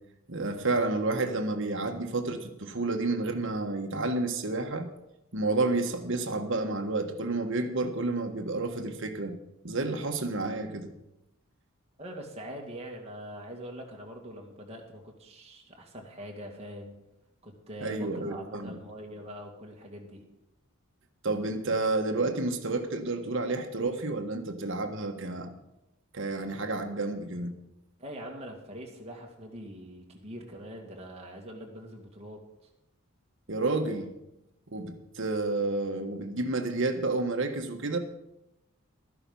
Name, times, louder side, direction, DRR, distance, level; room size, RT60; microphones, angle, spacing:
voice 1, 0.3-4.9 5.3-9.4 9.6-10.9 17.8-18.8 21.2-25.5 26.1-27.5 33.5-34.1 34.7-38.0, right 2 dB, 60° right, 5 dB, 1.4 m, -30 dB
voice 2, 12.0-16.9 17.4-20.2 28.0-32.4, equal, 30° right, 0 dB, 2.3 m, -43 dB
13.0 x 11.0 x 5.5 m, 0.91 s
head